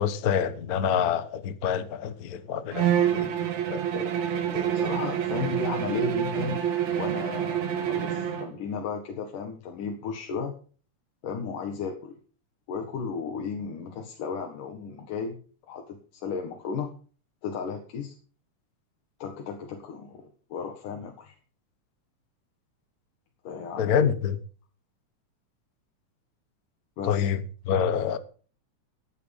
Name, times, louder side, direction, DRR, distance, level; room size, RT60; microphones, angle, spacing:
voice 1, 0.0-3.3 3.7-4.1 4.5-4.9 23.8-24.4 27.0-28.2, left 8 dB, 70° left, 0.8 m, -27 dB
Bowed string instrument, 2.7-8.5, right 10 dB, 65° right, 2.9 m, -27 dB
voice 2, 4.7-6.6 6.9-10.5 11.2-12.1 12.7-15.4 15.7-16.9 17.4-18.2 19.2-21.4 23.4-24.1 27.0-27.3, left 5 dB, 85° left, 3.3 m, -34 dB
16.0 x 9.6 x 5.4 m
omnidirectional pair, 3.6 m